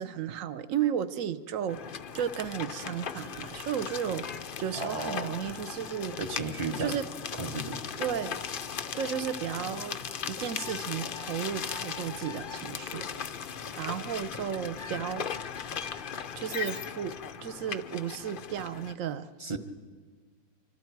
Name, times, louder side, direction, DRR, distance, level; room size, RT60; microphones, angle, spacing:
voice 1, 0.0-1.8 2.1-4.3 4.6-6.2 6.8-7.1 8.0-8.4 9.0-10.0 10.3-13.1 13.8-15.3 16.4-17.1 17.4-19.3, right 9 dB, 60° right, 14 dB, 1.0 m, -33 dB
sound 1, 1.7-18.9, left 7 dB, 70° left, 0.5 m, -38 dB
voice 2, 4.8-5.3 6.2-7.0 7.4-7.8 19.4-19.6, right 3 dB, 25° right, 7 dB, 0.7 m, -34 dB
25.5 x 24.5 x 4.6 m, 1.5 s
omnidirectional pair, 1.8 m